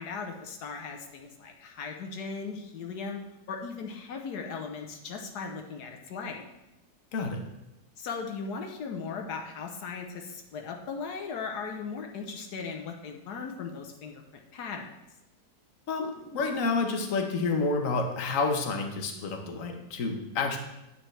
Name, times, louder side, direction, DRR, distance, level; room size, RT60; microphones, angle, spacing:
voice 1, 0.0-3.2 3.5-6.4 8.0-14.2 14.5-14.9, left 5 dB, 85° left, 3 dB, 1.4 m, -38 dB
voice 2, 7.1-7.4 15.9-20.6, left 3 dB, 55° left, 3 dB, 1.4 m, -29 dB
8.9 x 8.6 x 3.3 m, 0.93 s
omnidirectional pair, 1.7 m